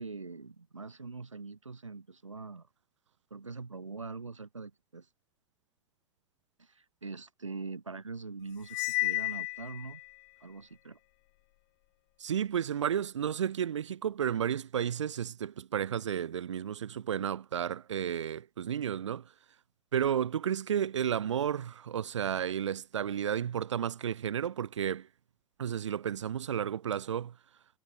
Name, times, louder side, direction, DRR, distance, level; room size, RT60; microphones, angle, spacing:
voice 1, 0.0-2.7 3.3-5.1 6.6-10.0 10.4-11.0, right 4 dB, 90° right, 1.5 m, -43 dB
Cymbal, 8.7-10.1, left 31 dB, 45° left, 0.4 m, -32 dB
voice 2, 12.2-19.3 19.9-25.1 25.6-27.3, right 9 dB, 75° right, 1.5 m, -32 dB
figure-of-eight pair, 95°, 15 cm